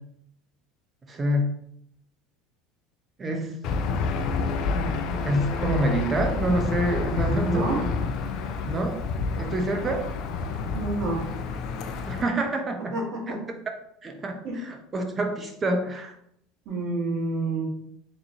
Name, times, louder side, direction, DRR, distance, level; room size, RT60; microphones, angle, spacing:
voice 1, 1.1-1.5 3.2-3.6 4.7-7.9 8.7-9.0 9.4-10.1 12.1-12.9 13.3-13.4 14.0-16.1, right 1 dB, 30° right, 4 dB, 0.8 m, -27 dB
Aircraft / Engine, 3.6-12.2, left 4 dB, 55° left, 0.4 m, -29 dB
voice 2, 7.3-7.8 10.7-11.2 12.9-13.4 14.4-14.6 16.6-17.7, right 3 dB, 55° right, -1 dB, 1.4 m, -29 dB
3.8 x 3.1 x 2.8 m, 0.73 s
hypercardioid pair, 80°, 0 cm